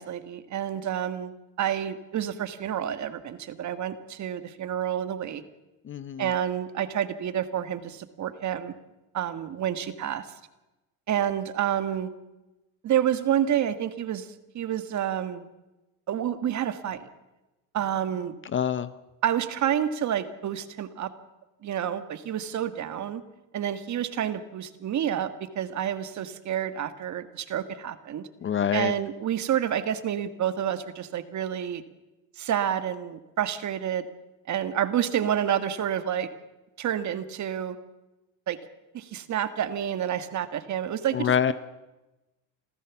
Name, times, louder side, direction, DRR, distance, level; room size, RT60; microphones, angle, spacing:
voice 1, 0.0-1.3 1.6-5.4 6.2-8.7 9.1-10.3 11.1-12.1 12.8-14.3 14.5-15.5 16.1-17.1 17.7-18.3 19.2-21.1 21.6-23.2 23.5-28.3 28.7-31.8 32.4-34.0 34.5-36.3 36.8-37.8 38.5-38.6 38.9-41.5, right 10 dB, 40° right, 11 dB, 1.7 m, -29 dB
voice 2, 5.8-6.3 18.5-18.9 28.4-28.9 41.1-41.5, left 8 dB, 30° left, 14 dB, 0.7 m, -26 dB
27.0 x 14.5 x 7.2 m, 1.0 s
cardioid pair, 120°, 42 cm